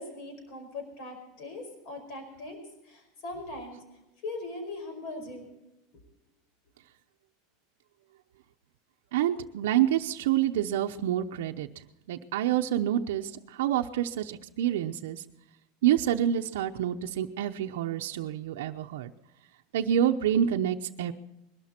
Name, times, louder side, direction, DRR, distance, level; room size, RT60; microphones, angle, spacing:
voice 1, 0.0-2.6 2.8-3.8 4.2-5.5, left 2 dB, 50° left, 5 dB, 5.0 m, -40 dB
voice 2, 9.1-11.7 12.1-15.2 15.8-19.1 19.7-21.1, right 11 dB, 85° right, 3 dB, 0.8 m, -27 dB
21.5 x 12.5 x 4.4 m, 0.94 s
supercardioid pair, 165°, 0 cm